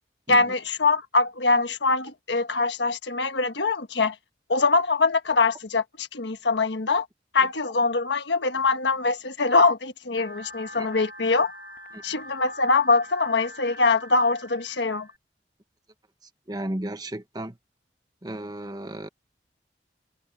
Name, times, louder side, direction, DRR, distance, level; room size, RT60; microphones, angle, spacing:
voice 1, 0.3-4.2 4.5-7.1 7.3-11.5 12.0-15.1, left 3 dB, 90° left, 1.4 m, -23 dB
sound 1, 10.2-15.2, left 1 dB, 55° left, 2.5 m, -43 dB
voice 2, 16.5-17.6 18.2-19.1, right 1 dB, 25° right, 1.3 m, -34 dB
head